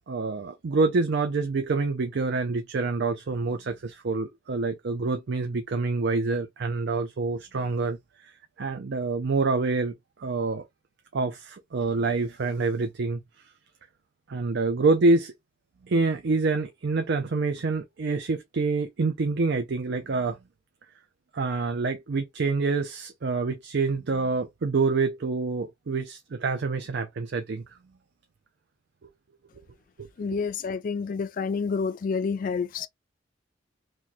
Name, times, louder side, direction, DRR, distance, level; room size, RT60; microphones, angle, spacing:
voice 1, 0.1-8.3 8.6-10.6 11.1-13.2 14.3-15.3 15.9-20.4 21.3-27.6 30.0-30.4, right 3 dB, 60° right, 0.5 m, -27 dB
voice 2, 30.2-32.9, left 5 dB, 45° left, 0.3 m, -29 dB
3.1 x 2.2 x 4.0 m
head